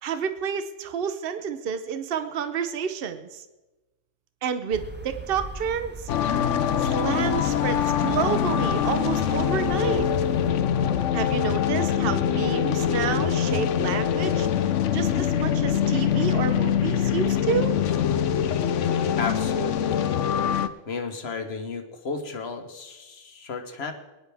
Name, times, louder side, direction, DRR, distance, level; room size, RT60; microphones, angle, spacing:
voice 1, 0.0-3.4 4.4-6.1 6.9-10.1 11.1-14.5 14.9-17.7, right 7 dB, 55° right, 10 dB, 1.0 m, -29 dB
sound 1, 4.7-10.5, right 4 dB, 10° right, 0.7 m, -39 dB
sound 2, 6.1-20.7, left 9 dB, 75° left, 1.0 m, -24 dB
voice 2, 18.1-18.9 19.2-20.2 20.9-23.9, left 4 dB, 60° left, 6 dB, 1.4 m, -34 dB
20.5 x 10.5 x 3.5 m, 1.1 s
omnidirectional pair, 1.3 m